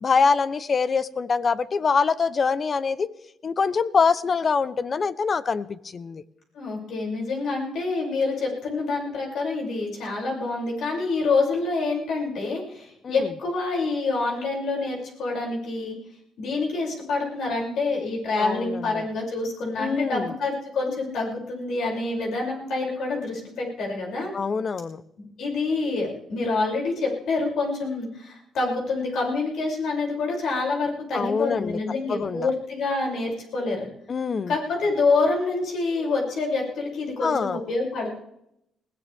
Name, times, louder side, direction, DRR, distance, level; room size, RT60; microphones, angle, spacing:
voice 1, 0.0-3.1 3.4-6.2 13.0-13.3 18.4-19.0 19.8-20.3 24.3-25.0 31.1-31.8 32.1-32.5 34.1-34.5 37.2-37.6, left 5 dB, 40° left, 16 dB, 0.8 m, -24 dB
voice 2, 6.5-16.0 16.4-24.3 25.2-33.9 34.5-38.2, left 3 dB, 75° left, -1 dB, 6.8 m, -27 dB
21.0 x 17.0 x 3.6 m, 0.77 s
cardioid pair, 90°, 0 cm